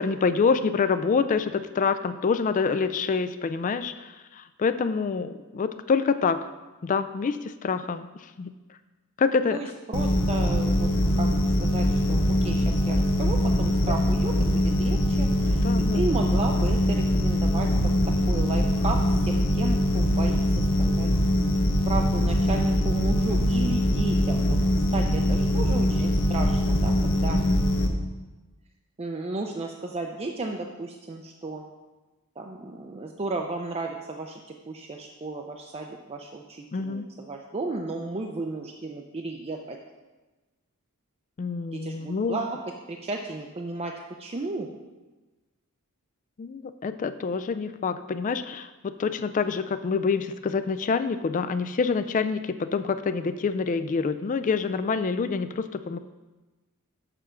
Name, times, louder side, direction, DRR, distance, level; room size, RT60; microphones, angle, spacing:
voice 1, 0.0-6.5 6.8-8.1 8.4-8.5 9.2-9.6 13.9-14.0 15.5-16.2 27.3-27.6 36.7-37.1 41.4-42.4 46.4-56.0, left 5 dB, 35° left, 11 dB, 0.3 m, -26 dB
voice 2, 9.5-10.9 11.2-21.1 21.9-27.4 29.0-31.6 32.4-34.4 34.7-39.8 41.7-42.6 42.9-44.7, right 3 dB, 25° right, 2 dB, 0.5 m, -34 dB
sound 1, 9.9-27.9, equal, 60° left, 1.0 m, -23 dB
6.8 x 6.1 x 5.7 m, 1.2 s
head